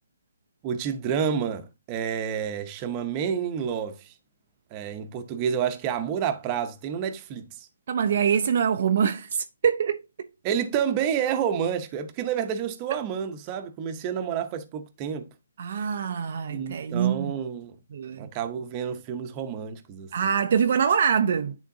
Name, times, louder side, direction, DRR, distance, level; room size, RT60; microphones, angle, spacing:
voice 1, 0.6-4.1 4.7-7.7 10.4-15.3 16.5-17.7 18.2-20.1, right 8 dB, 25° right, 0.7 m, -29 dB
voice 2, 7.9-10.0 15.6-17.4 17.9-18.3 20.1-21.6, right 7 dB, 50° right, 0.4 m, -24 dB
10.0 x 3.6 x 2.7 m
hypercardioid pair, 160°, 0 cm